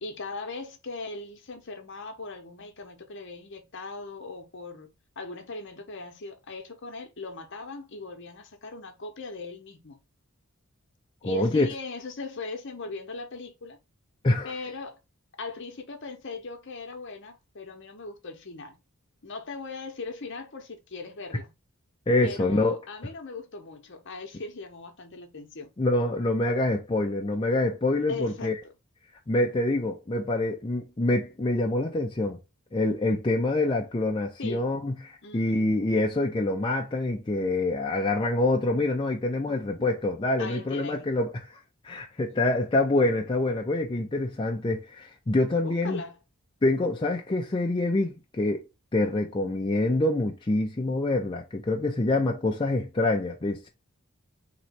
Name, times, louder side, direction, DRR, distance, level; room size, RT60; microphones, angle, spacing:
voice 1, 0.0-4.9 5.2-10.0 11.2-13.8 14.4-15.0 15.4-18.8 19.2-21.5 22.2-25.7 28.1-28.5 34.4-34.6 35.2-35.7 39.5-39.9 40.4-41.1 42.3-42.6 45.6-46.2, left 3 dB, 55° left, 0.9 m, -39 dB
voice 2, 11.2-11.7 14.2-14.5 22.1-22.8 25.8-28.6 29.3-32.4 32.7-41.3 41.8-46.0 46.6-48.6 48.9-53.7, left 2 dB, 20° left, 0.4 m, -26 dB
3.1 x 3.1 x 4.2 m
head